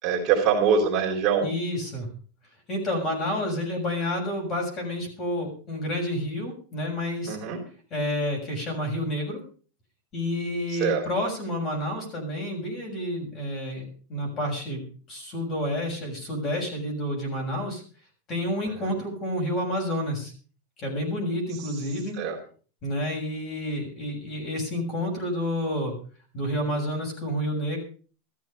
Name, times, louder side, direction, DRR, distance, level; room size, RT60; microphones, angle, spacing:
voice 1, 0.0-1.5 7.3-7.6 10.8-11.0 18.7-18.9 22.2-22.4, right 6 dB, 30° right, -1 dB, 3.8 m, -24 dB
voice 2, 1.4-2.1 2.7-7.4 7.9-9.4 10.1-17.8 18.3-20.3 20.8-22.1 22.8-25.9 26.3-27.8, left 1 dB, 25° left, 1 dB, 6.6 m, -29 dB
14.0 x 13.5 x 5.4 m, 0.40 s
supercardioid pair, 170°, 0 cm